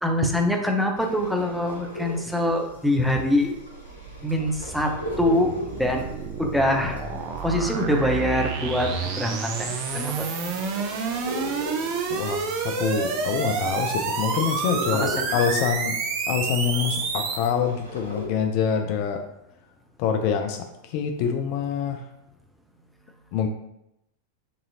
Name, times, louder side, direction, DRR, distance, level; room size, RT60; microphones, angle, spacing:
voice 1, 0.0-3.6 4.2-4.9 5.2-5.5 5.8-6.1 6.4-7.0 7.4-10.3 15.0-15.1, left 1 dB, ahead, 1 dB, 0.6 m, -24 dB
sound 1, 1.0-18.3, left 1 dB, 85° right, 1.0 m, -39 dB
sound 2, 3.4-17.5, right 5 dB, 40° right, 0.5 m, -29 dB
voice 2, 12.1-15.9 16.3-19.2 20.0-20.6 20.9-22.0 23.3-23.5, left 7 dB, 45° left, 5 dB, 0.4 m, -25 dB
5.3 x 2.8 x 2.7 m, 0.83 s
figure-of-eight pair, 90°, 0 cm